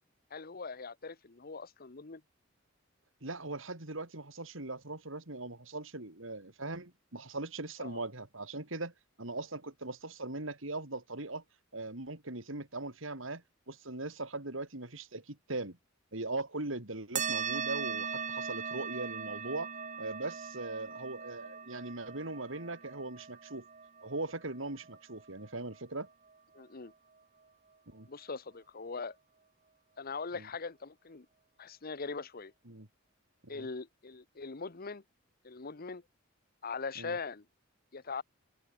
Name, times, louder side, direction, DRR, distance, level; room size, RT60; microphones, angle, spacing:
voice 1, 0.3-2.2 7.8-8.0 26.5-26.9 28.1-29.1 30.0-31.3 31.6-32.5 33.5-35.0 35.4-36.0 36.6-37.4 37.9-38.2, left 4 dB, 45° left, 1.0 m, -41 dB
voice 2, 3.2-8.9 9.2-11.4 11.7-15.8 16.1-19.7 20.0-23.7 24.0-26.1 27.9-28.1 30.3-30.5 32.7-32.9 33.4-33.7 37.0-37.2, right 2 dB, 70° right, 3.4 m, -40 dB
sound 1, 17.2-26.1, right 6 dB, 40° right, 1.9 m, -40 dB
open air
head